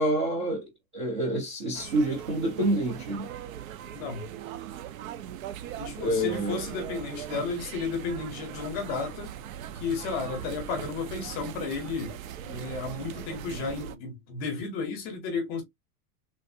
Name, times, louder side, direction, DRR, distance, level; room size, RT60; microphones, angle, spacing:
voice 1, 0.0-3.3 6.0-6.6, right 1 dB, 25° right, 0.4 m, -28 dB
sound 1, 1.7-14.0, right 10 dB, 65° right, 0.6 m, -40 dB
voice 2, 3.9-4.3 5.8-9.3 9.7-12.2 12.5-15.6, left 4 dB, 20° left, 0.7 m, -33 dB
3.2 x 2.5 x 2.6 m
supercardioid pair, 175°, 44 cm